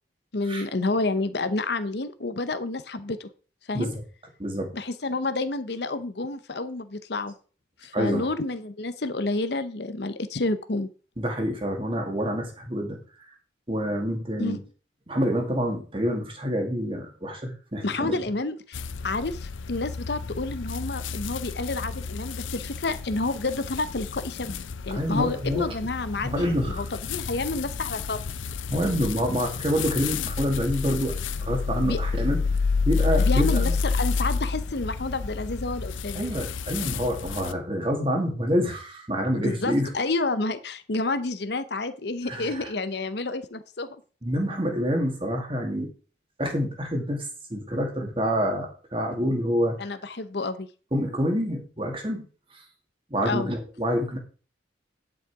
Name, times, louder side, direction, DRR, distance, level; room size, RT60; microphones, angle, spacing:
voice 1, 0.3-3.3 3.7-3.9 4.7-7.3 7.8-10.9 14.4-14.6 17.8-28.2 31.8-32.0 33.2-36.2 39.3-43.9 49.8-50.7 53.2-53.5, left 3 dB, 60° left, 12 dB, 0.8 m, -29 dB
voice 2, 4.4-4.7 7.9-8.3 11.2-13.0 13.7-14.6 15.1-18.2 24.9-25.8 26.2-26.9 28.7-32.4 32.8-33.8 36.1-39.9 42.2-42.7 44.2-45.9 46.4-49.8 50.9-52.3 52.5-52.6 53.1-54.2, equal, 30° right, 2 dB, 2.2 m, -27 dB
sound 1, 18.7-37.5, left 4 dB, 90° left, 0.6 m, -30 dB
10.5 x 6.4 x 4.8 m, 0.38 s
head